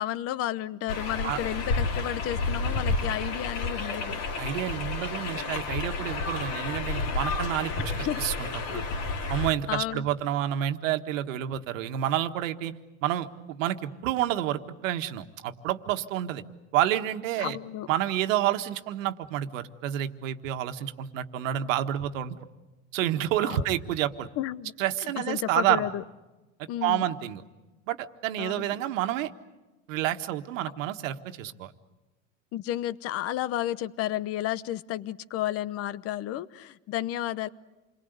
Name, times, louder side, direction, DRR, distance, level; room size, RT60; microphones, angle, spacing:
voice 1, 0.0-4.2 7.8-8.2 8.7-8.8 9.7-10.1 17.4-17.9 23.4-23.6 24.4-24.7 25.2-26.0 26.7-27.1 28.4-28.6 32.5-37.5, left 13 dB, 35° left, 17 dB, 0.8 m, -32 dB
sound 1, 0.9-9.5, left 3 dB, 60° left, 4.0 m, -31 dB
voice 2, 4.4-8.8 9.3-12.7 13.0-16.4 16.7-17.6 17.9-22.3 22.9-24.3 24.8-25.9 26.8-27.4 27.9-29.3 29.9-31.7, right 12 dB, 80° right, 8 dB, 1.7 m, -29 dB
28.5 x 21.5 x 8.1 m, 1.1 s
supercardioid pair, 140°, 38 cm